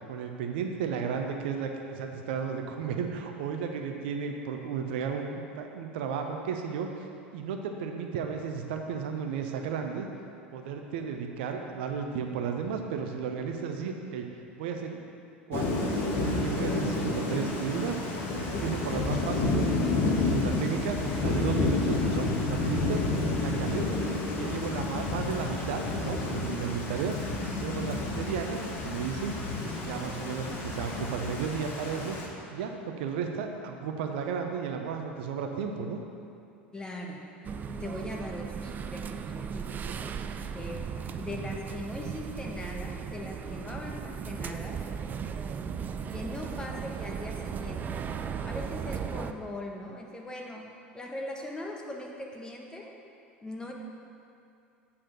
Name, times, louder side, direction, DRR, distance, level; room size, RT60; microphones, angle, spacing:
voice 1, 0.1-7.1 7.3-10.1 10.5-14.2 14.6-15.0 15.5-15.9 16.2-18.0 18.3-23.1 23.4-23.9 24.3-27.2 27.6-29.4 29.7-32.2 32.5-36.0 39.8-39.9, right 6 dB, 65° right, 4 dB, 0.7 m, -34 dB
Thunder / Rain, 15.5-32.3, left 2 dB, 40° left, 1.4 m, -30 dB
voice 2, 36.7-37.2 37.7-39.7 40.5-40.8 41.2-44.8 46.1-48.0 48.4-50.7 50.9-52.9 53.4-53.7, left 1 dB, 15° left, 0 dB, 1.2 m, -40 dB
sound 1, 37.4-49.3, right 7 dB, 30° right, 0.4 m, -36 dB
8.7 x 4.3 x 6.6 m, 2.5 s
figure-of-eight pair, 75°, 6 cm